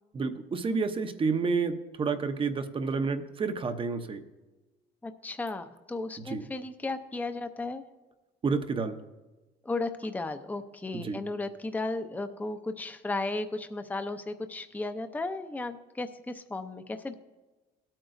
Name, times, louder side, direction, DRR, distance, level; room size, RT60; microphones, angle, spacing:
voice 1, 0.1-4.2 6.2-6.5 8.4-9.0 10.9-11.2, right 4 dB, 30° right, 9 dB, 0.7 m, -30 dB
voice 2, 5.0-7.8 9.6-17.1, left 2 dB, 10° left, 8 dB, 0.6 m, -35 dB
17.0 x 8.9 x 2.6 m, 1.2 s
cardioid pair, 110°, 17 cm